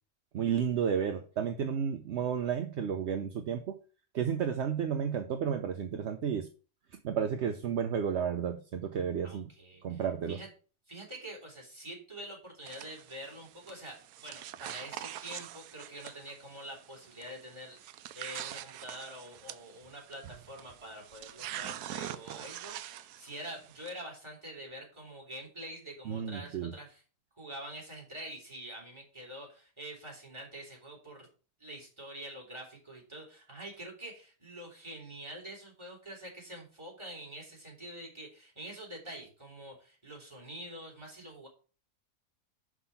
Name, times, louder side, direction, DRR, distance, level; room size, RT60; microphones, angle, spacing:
voice 1, 0.3-3.8 4.1-6.5 7.0-9.5 9.8-10.4 26.1-26.7, right 7 dB, 55° right, 6 dB, 0.8 m, -32 dB
voice 2, 9.2-10.0 10.3-10.5 10.9-27.0 27.4-31.3 31.6-41.5, right 1 dB, 15° right, -2 dB, 3.6 m, -46 dB
sound 1, 12.7-23.9, right 12 dB, 75° right, 1.1 m, -45 dB
6.1 x 5.9 x 5.7 m, 0.37 s
omnidirectional pair, 1.7 m